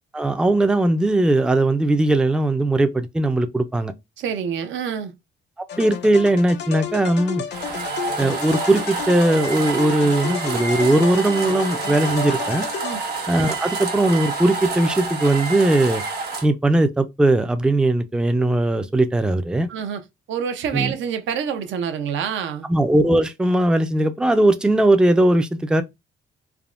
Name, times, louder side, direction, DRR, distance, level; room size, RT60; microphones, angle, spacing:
voice 1, 0.1-3.9 5.8-7.4 8.2-12.7 13.3-16.0 16.4-19.7 20.7-20.9 22.7-25.8, right 1 dB, 5° right, 0.3 m, -19 dB
voice 2, 4.2-5.1 12.8-13.0 19.7-20.0 20.3-22.7, right 7 dB, 70° right, 0.6 m, -27 dB
sound 1, 5.7-13.4, left 8 dB, 60° left, 0.5 m, -32 dB
sound 2, 7.5-16.5, right 4 dB, 50° right, 1.1 m, -28 dB
3.4 x 2.1 x 2.4 m
cardioid pair, 90°, 20 cm